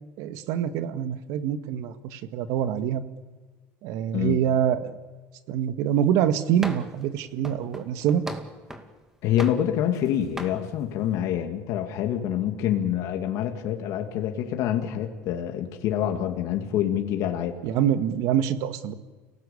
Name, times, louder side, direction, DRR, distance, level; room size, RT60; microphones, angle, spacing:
voice 1, 0.2-3.0 3.8-5.0 5.5-8.2 17.6-18.9, right 9 dB, 70° right, 10 dB, 1.9 m, -25 dB
sound 1, 6.6-7.0 7.4-8.9 9.4-10.1 10.4-10.6, right 1 dB, 10° right, 2.4 m, -38 dB
voice 2, 9.2-17.6, left 10 dB, 60° left, 4 dB, 2.5 m, -26 dB
29.5 x 18.5 x 8.7 m, 1.3 s
cardioid pair, 125°, 6 cm